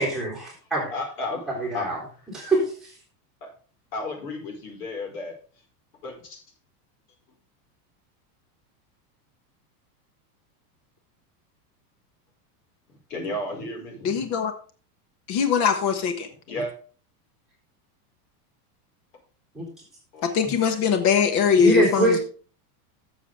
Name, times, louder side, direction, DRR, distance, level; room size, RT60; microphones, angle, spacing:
voice 1, 0.0-0.9 1.6-2.0 2.3-2.6 19.5-19.6 20.4-20.5 21.6-22.2, right 2 dB, ahead, -6 dB, 3.9 m, -24 dB
voice 2, 0.9-2.3 3.4-3.5 3.9-5.3 6.0-6.4 13.1-14.3 16.5-16.7 20.1-20.3, left 2 dB, 75° left, 1 dB, 5.0 m, -33 dB
voice 3, 14.0-14.5 15.3-16.3 20.2-22.2, left 6 dB, 35° left, 8 dB, 1.4 m, -21 dB
12.5 x 7.3 x 3.6 m, 0.40 s
supercardioid pair, 165°, 47 cm